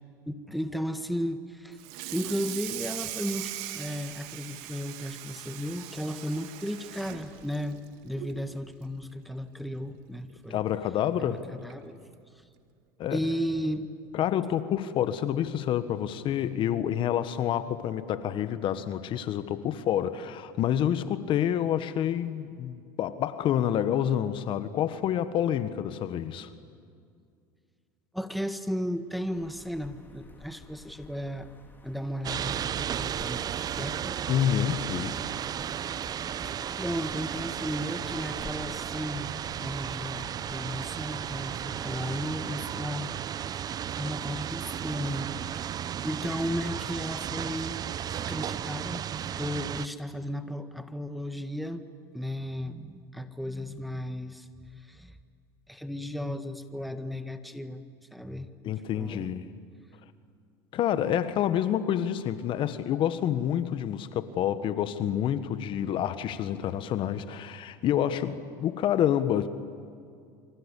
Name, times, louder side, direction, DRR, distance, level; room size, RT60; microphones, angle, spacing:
voice 1, 0.3-1.8 2.1-10.6 11.2-12.0 13.1-13.9 28.1-31.5 31.8-34.2 36.4-43.6 44.0-47.8 48.3-49.1 49.4-51.8 52.1-54.5 54.8-55.2 55.7-57.8 58.1-58.5 59.0-59.3, equal, ahead, 9 dB, 1.6 m, -35 dB
Water tap faucet / Sink (filling or washing), 1.7-8.4 8.8-9.0 9.4-9.5 9.9-10.0 11.1-11.2 11.7-11.9, right 14 dB, 70° right, 2.3 m, -40 dB
voice 2, 10.5-11.4 13.0-13.2 14.1-26.5 34.3-35.2 58.6-59.4 60.7-69.5, left 10 dB, 50° left, 12 dB, 1.5 m, -28 dB
sound 1, 29.3-42.3, left 3 dB, 20° left, 3.5 m, -51 dB
sound 2, 32.2-49.9, right 9 dB, 35° right, 0.7 m, -34 dB
28.5 x 25.0 x 8.5 m, 2.3 s
supercardioid pair, 95°, 11 cm